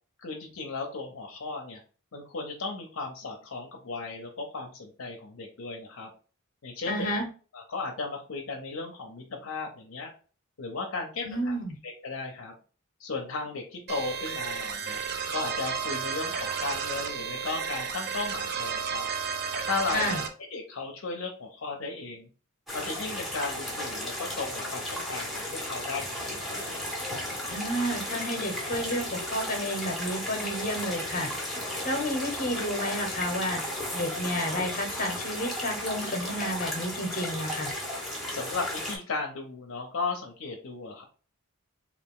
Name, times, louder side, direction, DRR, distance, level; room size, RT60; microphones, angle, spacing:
voice 1, 0.2-1.8 2.1-6.1 6.6-7.1 7.5-10.1 10.6-11.5 11.8-12.5 13.0-15.0 15.3-19.1 19.7-22.3 22.7-26.7 38.3-41.0, left 3 dB, 65° left, 2 dB, 0.6 m, -35 dB
voice 2, 6.9-7.2 11.2-11.8 19.9-20.2 27.5-31.3 31.8-33.6 33.9-37.7, equal, 40° left, 4 dB, 0.8 m, -31 dB
sound 1, 13.9-20.3, right 6 dB, 45° right, 0.4 m, -32 dB
sound 2, 22.7-39.0, left 1 dB, ahead, 0.8 m, -34 dB
3.3 x 2.4 x 3.6 m, 0.38 s
head